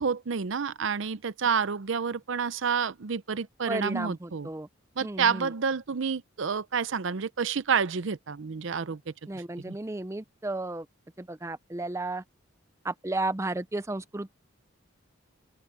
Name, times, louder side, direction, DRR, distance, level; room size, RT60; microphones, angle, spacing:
voice 1, 0.0-4.5 5.0-9.8, right 6 dB, 65° right, 0.6 m, -29 dB
voice 2, 3.7-4.7 5.0-5.5 9.3-10.9 11.2-12.2 12.8-14.3, right 2 dB, 15° right, 0.5 m, -33 dB
open air
head